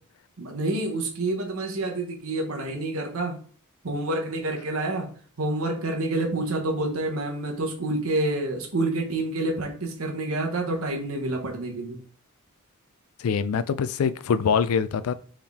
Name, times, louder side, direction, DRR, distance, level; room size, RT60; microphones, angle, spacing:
voice 1, 0.4-3.4 3.8-5.1 5.4-12.0, right 2 dB, 75° right, 1.0 m, -28 dB
voice 2, 13.2-15.1, left 6 dB, 75° left, 0.4 m, -24 dB
4.3 x 3.5 x 3.5 m
head